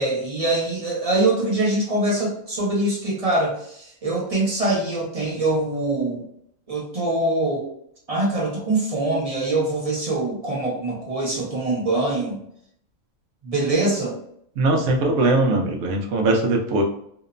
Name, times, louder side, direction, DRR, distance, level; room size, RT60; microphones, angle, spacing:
voice 1, 0.0-6.2 6.7-7.7 8.1-12.4 13.4-14.2, right 2 dB, 35° right, -4 dB, 0.6 m, -23 dB
voice 2, 14.6-16.8, right 2 dB, 65° right, 1 dB, 0.9 m, -20 dB
2.9 x 2.0 x 2.4 m, 0.68 s
omnidirectional pair, 1.5 m